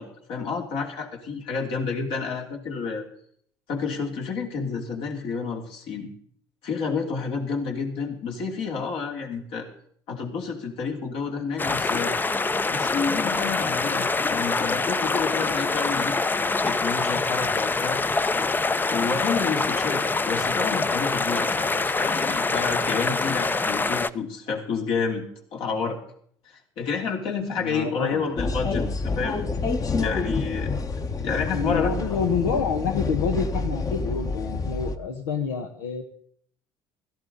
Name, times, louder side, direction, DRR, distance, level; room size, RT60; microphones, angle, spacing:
voice 1, 0.0-3.0 3.7-6.1 6.6-9.7 10.1-12.1 12.7-16.2 16.6-18.0 18.9-25.2 25.5-26.0 26.5-28.8 29.1-29.4 30.0-30.7 31.1-31.9, left 5 dB, 65° left, 1 dB, 3.0 m, -29 dB
sound 1, 11.6-24.1, left 3 dB, 20° left, 0.6 m, -25 dB
voice 2, 27.6-28.2 28.6-28.9 31.5-36.0, left 6 dB, 85° left, 4 dB, 1.2 m, -28 dB
sound 2, 28.4-35.0, left 3 dB, 35° left, 1.3 m, -28 dB
16.5 x 13.5 x 4.0 m, 0.64 s
hypercardioid pair, 65°, 10 cm